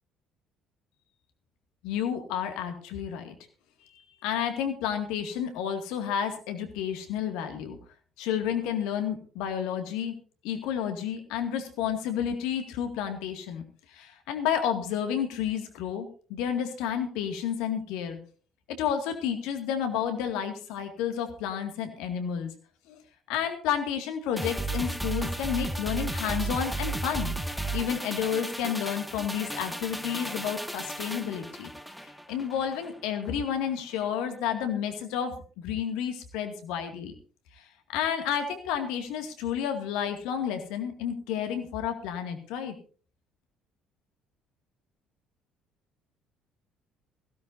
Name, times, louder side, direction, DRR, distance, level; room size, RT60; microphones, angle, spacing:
voice 1, 1.8-3.4 4.2-7.8 8.2-10.2 10.4-13.6 13.9-18.2 18.8-22.5 22.9-23.0 23.3-27.3 27.7-31.7 32.3-37.1 37.6-37.7 37.9-42.7, left 8 dB, 65° left, 7 dB, 2.2 m, -31 dB
sound 1, 24.4-32.9 33.2-33.4, right 2 dB, ahead, 1.6 m, -34 dB
17.5 x 16.0 x 2.7 m, 0.40 s
figure-of-eight pair, 50°, 0 cm